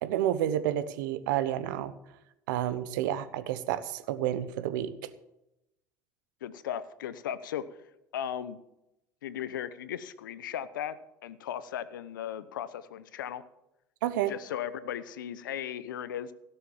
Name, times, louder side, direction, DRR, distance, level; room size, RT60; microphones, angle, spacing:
voice 1, 0.0-1.9 2.5-5.1 14.0-14.3, right 11 dB, 75° right, 14 dB, 1.0 m, -30 dB
voice 2, 6.4-7.6 8.1-8.6 9.2-11.0 11.2-13.4 14.3-16.3, left 10 dB, 85° left, 15 dB, 0.9 m, -36 dB
17.5 x 6.8 x 7.3 m, 0.87 s
hypercardioid pair, 75°, 10 cm